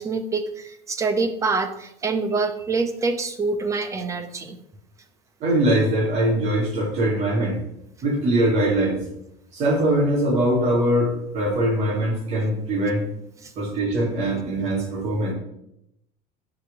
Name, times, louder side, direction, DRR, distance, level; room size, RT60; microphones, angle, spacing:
voice 1, 0.0-4.6 13.4-13.5, right 4 dB, 15° right, 8 dB, 0.9 m, -26 dB
voice 2, 5.4-7.6 8.0-9.1 9.5-13.0 13.6-15.3, right 1 dB, 40° right, 0 dB, 3.0 m, -22 dB
9.6 x 5.2 x 6.9 m, 0.80 s
cardioid pair, 165°, 18 cm